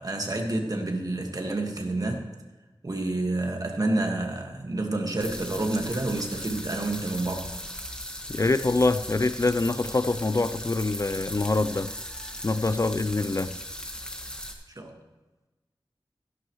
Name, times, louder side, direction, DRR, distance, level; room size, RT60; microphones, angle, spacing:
voice 1, 0.0-2.2 2.8-7.5 14.8-15.0, right 2 dB, 40° right, 1.7 m, -29 dB
sound 1, 5.2-14.5, equal, 10° left, 1.5 m, -38 dB
voice 2, 8.3-11.9 12.4-13.5, left 3 dB, 35° left, 0.4 m, -25 dB
15.5 x 11.0 x 3.1 m
wide cardioid pair, 80°, 9 cm